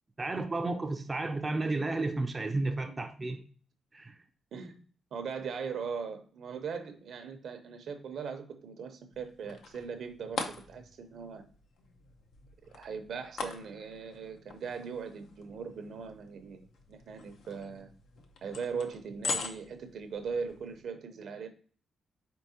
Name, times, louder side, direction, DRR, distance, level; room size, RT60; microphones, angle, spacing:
voice 1, 0.2-3.4 3.9-4.2, right 2 dB, 20° right, 4 dB, 0.4 m, -32 dB
voice 2, 5.1-11.4 12.6-16.6 16.9-17.9 18.4-21.5, right 6 dB, 65° right, 7 dB, 0.7 m, -39 dB
sound 1, 9.1-20.8, left 4 dB, 75° left, 0.7 m, -43 dB
4.6 x 4.3 x 2.7 m, 0.42 s
cardioid pair, 115°, 0 cm